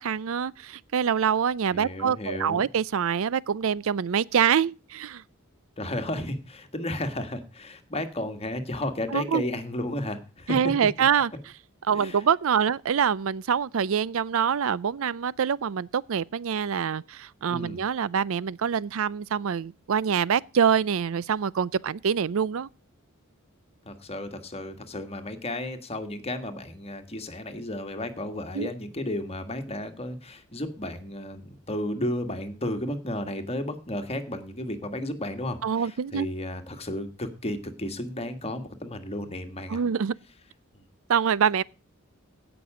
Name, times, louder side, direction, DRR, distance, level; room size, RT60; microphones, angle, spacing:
voice 1, 0.0-5.2 9.1-9.4 10.5-11.3 11.9-22.7 28.5-28.7 35.6-36.3 39.7-40.1 41.1-41.6, right 7 dB, 70° right, 0.5 m, -25 dB
voice 2, 1.7-2.7 5.8-10.6 11.9-12.2 17.5-17.8 23.8-39.8, left 1 dB, 30° left, 1.6 m, -33 dB
16.5 x 6.1 x 4.8 m
head